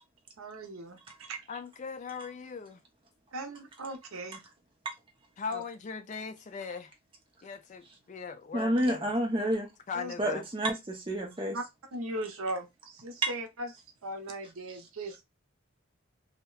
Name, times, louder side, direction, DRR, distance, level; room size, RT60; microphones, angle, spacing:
voice 1, 0.4-1.6 3.3-4.5 5.5-5.6 9.9-10.1 11.5-11.6 11.9-13.7 14.0-15.2, right 1 dB, 85° right, 0.7 m, -38 dB
voice 2, 1.5-2.8 5.4-6.9 7.4-9.1 9.9-10.4, left 5 dB, 35° left, 0.3 m, -39 dB
voice 3, 8.5-9.7 10.2-11.6 13.2-13.3, right 1 dB, 25° right, 0.6 m, -29 dB
2.8 x 2.1 x 2.3 m
head